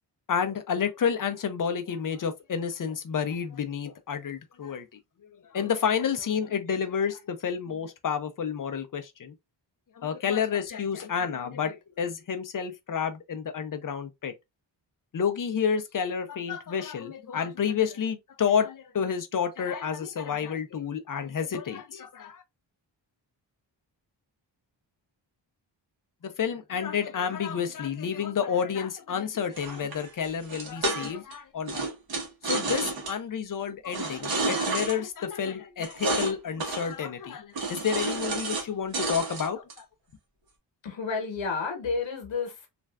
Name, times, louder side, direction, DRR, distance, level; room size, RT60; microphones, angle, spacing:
voice 1, 0.3-4.9 5.5-9.3 10.0-14.3 15.1-22.4 26.2-31.8 32.4-39.8, left 7 dB, 45° left, 0.5 m, -30 dB
sound 1, 29.6-31.3 31.7-33.1 33.9-35.0 35.8-36.3 36.6-36.9 37.5-38.7 38.9-39.8, right 2 dB, 55° right, 1.0 m, -30 dB
voice 2, 40.8-42.7, left 4 dB, 80° left, 1.0 m, -31 dB
3.2 x 2.5 x 2.2 m
wide cardioid pair, 145°, 45 cm